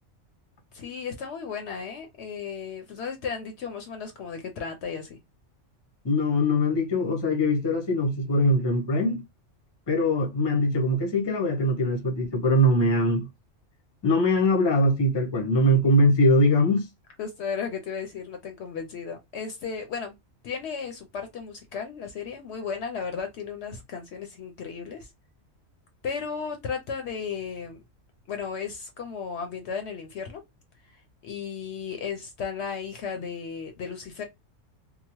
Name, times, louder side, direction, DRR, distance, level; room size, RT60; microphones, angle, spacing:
voice 1, 0.7-5.2 17.2-20.2 20.4-25.1 26.0-27.8 28.3-30.4 30.9-31.0 31.2-34.2, left 6 dB, 65° left, 0.8 m, -34 dB
voice 2, 6.0-9.2 9.9-13.3 14.0-16.8, left 1 dB, 25° left, 0.6 m, -22 dB
2.8 x 2.1 x 2.9 m
omnidirectional pair, 1.4 m